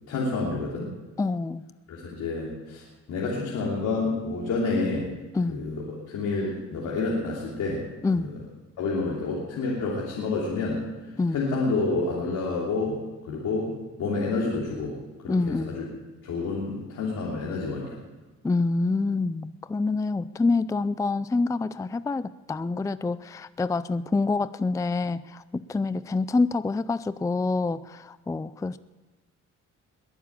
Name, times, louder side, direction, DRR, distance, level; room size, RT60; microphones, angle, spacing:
voice 1, 0.1-0.9 1.9-2.8 3.1-5.1 5.5-7.8 8.2-8.3 8.8-10.8 11.3-13.0 13.2-14.9 15.2-15.8 16.2-17.9, left 3 dB, 75° left, -4 dB, 3.2 m, -28 dB
voice 2, 1.2-1.7 5.3-5.6 8.0-8.3 11.2-11.4 15.3-15.7 18.4-28.8, left 3 dB, 10° left, 16 dB, 0.4 m, -26 dB
21.5 x 7.2 x 8.7 m, 1.2 s
cardioid pair, 90°, 30 cm